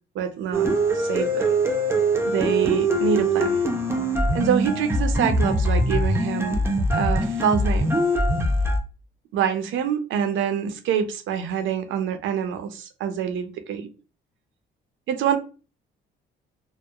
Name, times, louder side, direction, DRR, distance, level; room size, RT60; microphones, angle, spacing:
voice 1, 0.2-1.5 2.2-3.6 4.3-6.6 6.9-7.9 9.3-13.9 15.1-15.4, right 8 dB, 75° right, 0.5 m, -26 dB
sound 1, 0.5-8.8, right 1 dB, 10° right, 0.5 m, -22 dB
2.8 x 2.0 x 2.3 m
cardioid pair, 90°, 20 cm